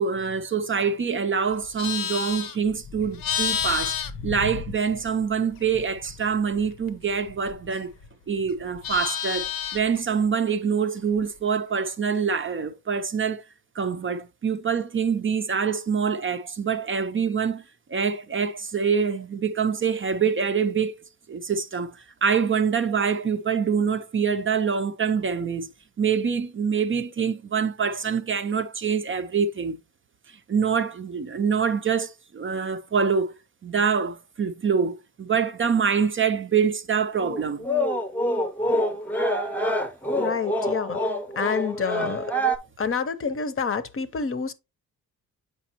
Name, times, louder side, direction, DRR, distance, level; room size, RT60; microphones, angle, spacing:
voice 1, 0.0-7.9 8.3-13.4 13.8-17.6 17.9-20.9 21.3-25.7 26.0-29.8 30.5-33.3 33.6-37.7, right 6 dB, 35° right, 0.5 m, -25 dB
Livestock farm animals working animals, 1.5-5.2 5.5-8.1 8.4-10.0, left 8 dB, 75° left, 0.8 m, -31 dB
sound 1, 37.2-42.6, equal, 5° left, 0.7 m, -26 dB
voice 2, 40.1-41.0 41.4-42.3 42.8-44.5, left 5 dB, 40° left, 0.7 m, -28 dB
7.4 x 5.0 x 2.9 m
wide cardioid pair, 125°, 35 cm